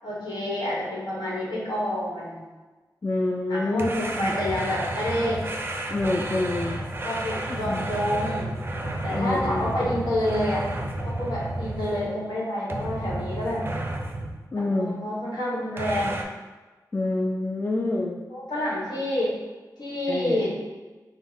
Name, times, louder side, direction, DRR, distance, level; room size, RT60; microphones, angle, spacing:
voice 1, 0.0-2.4 3.5-5.5 7.0-8.5 9.0-10.6 11.0-13.6 14.6-16.2 18.3-19.3 19.8-20.5, left 1 dB, 75° left, -5 dB, 1.2 m, -28 dB
voice 2, 3.0-4.5 5.9-6.8 7.5-7.9 9.1-10.0 14.5-15.0 16.9-18.2 20.1-20.5, left 2 dB, 30° left, -1 dB, 0.4 m, -27 dB
sound 1, 3.8-12.3 12.7-14.4 15.8-16.2, right 1 dB, 30° right, 0.4 m, -32 dB
4.5 x 2.1 x 3.9 m, 1.3 s
wide cardioid pair, 95°, 7 cm